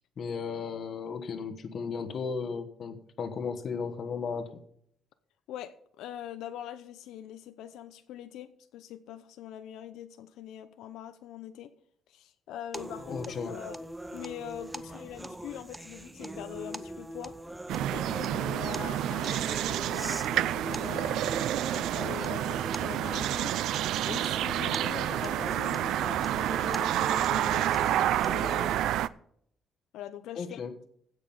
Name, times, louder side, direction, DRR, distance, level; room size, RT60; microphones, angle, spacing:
voice 1, 0.2-4.6 13.1-13.5 30.4-30.7, left 5 dB, 40° left, 1.3 m, -35 dB
voice 2, 5.5-11.7 12.1-13.8 14.1-17.4 17.9-23.5 24.0-27.9 28.3-28.7 29.9-30.6, left 11 dB, 80° left, 0.7 m, -43 dB
sound 1, 12.7-28.8, right 1 dB, 5° right, 0.5 m, -41 dB
sound 2, 17.7-29.1, right 12 dB, 75° right, 0.4 m, -29 dB
16.0 x 6.4 x 5.5 m
cardioid pair, 175°, 0 cm